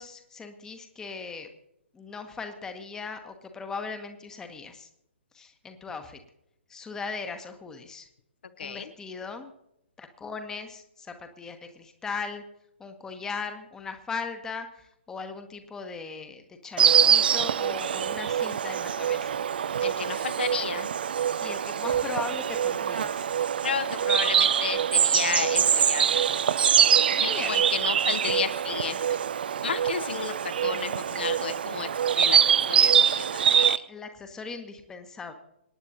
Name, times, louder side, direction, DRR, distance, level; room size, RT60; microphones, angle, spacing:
voice 1, 0.0-1.5 1.9-4.9 5.3-6.2 6.7-8.1 8.6-9.5 10.0-12.5 12.8-19.4 21.4-23.3 27.1-27.6 33.9-35.3, left 4 dB, 10° left, 7 dB, 1.1 m, -38 dB
voice 2, 8.6-8.9 19.8-20.9 23.6-26.1 27.1-29.2 29.6-30.3 30.6-31.9 32.2-32.4 32.7-33.8, left 6 dB, 60° left, 9 dB, 1.0 m, -32 dB
Insect, 16.8-33.8, right 8 dB, 55° right, 0.5 m, -24 dB
26.5 x 9.5 x 2.8 m, 0.81 s
figure-of-eight pair, 125°, 6 cm